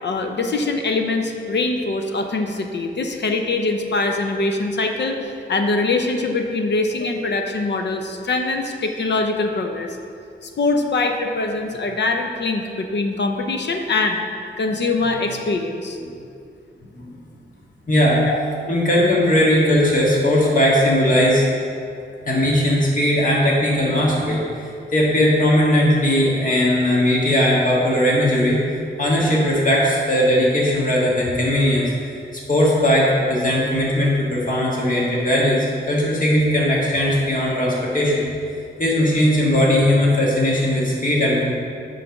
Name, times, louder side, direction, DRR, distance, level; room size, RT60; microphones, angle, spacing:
voice 1, 0.0-5.2 5.5-9.9 10.4-14.2 14.6-16.0 18.3-18.4, left 3 dB, 65° left, 4 dB, 0.6 m, -23 dB
voice 2, 17.9-18.2 18.7-21.4 22.2-24.7 24.9-28.6 29.0-38.3 38.8-41.5, left 1 dB, 45° left, -5 dB, 1.5 m, -18 dB
7.6 x 3.3 x 5.8 m, 2.4 s
wide cardioid pair, 140°, 20 cm